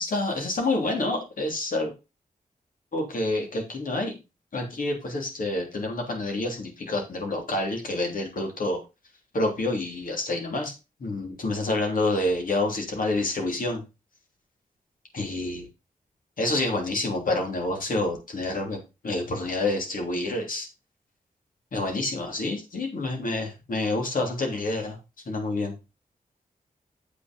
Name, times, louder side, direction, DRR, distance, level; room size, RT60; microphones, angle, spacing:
voice 1, 0.0-1.9 2.9-4.2 4.5-8.8 9.3-10.7 11.0-13.8 15.1-15.7 16.4-20.7 21.7-25.0 25.3-25.7, left 2 dB, 70° left, 2 dB, 3.2 m, -28 dB
8.2 x 6.3 x 5.3 m, 0.27 s
wide cardioid pair, 95°, 15 cm